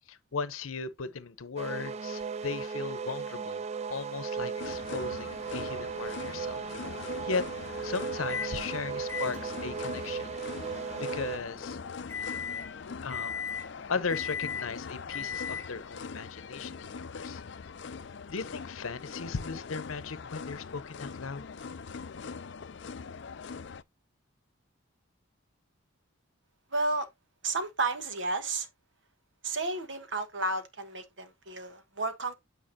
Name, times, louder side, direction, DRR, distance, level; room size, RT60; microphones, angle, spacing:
voice 1, 0.1-3.6 3.9-6.6 7.2-7.4 7.8-10.4 10.7-11.8 13.0-13.5 13.9-17.4 18.3-21.4, left 5 dB, 90° left, 0.8 m, -37 dB
sound 1, 1.6-11.4, right 5 dB, 30° right, 0.4 m, -36 dB
sound 2, 4.6-23.8, left 5 dB, 60° left, 0.5 m, -42 dB
Microwave oven, 8.3-8.6 9.1-15.9, left 6 dB, 10° left, 0.9 m, -39 dB
voice 2, 26.7-27.1 27.4-28.7 29.4-32.3, right 3 dB, 60° right, 1.2 m, -32 dB
8.9 x 4.8 x 2.8 m
head